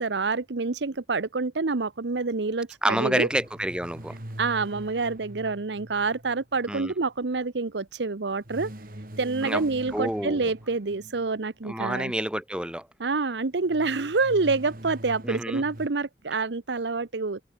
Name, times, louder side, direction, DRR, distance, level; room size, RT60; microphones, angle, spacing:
voice 1, 0.0-3.3 4.4-8.7 9.2-12.1 13.0-17.4, right 3 dB, 85° right, 0.9 m, -27 dB
voice 2, 2.8-4.1 6.7-6.9 9.4-9.6 9.9-10.4 11.6-12.9 15.2-15.6, right 1 dB, 5° right, 0.9 m, -28 dB
sound 1, 3.3-6.8 8.4-11.6 13.7-15.9, right 1 dB, 50° right, 2.6 m, -43 dB
head